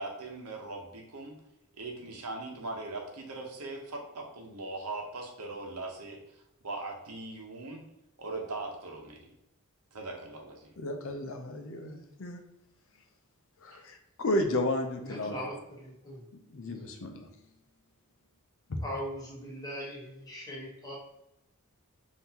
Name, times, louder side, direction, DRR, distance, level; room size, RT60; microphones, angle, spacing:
voice 1, 0.0-1.4 1.8-6.2 6.6-7.8 8.2-9.3 9.9-10.7 13.7-13.8, right 2 dB, 80° right, 1 dB, 0.9 m, -40 dB
voice 2, 10.8-12.4 13.6-15.3 16.5-17.3 18.7-18.8, left 1 dB, 60° left, 5 dB, 0.6 m, -33 dB
voice 3, 15.0-16.2 16.6-16.9 18.8-21.0, equal, 15° left, -4 dB, 1.1 m, -40 dB
5.5 x 2.7 x 2.8 m, 0.84 s
head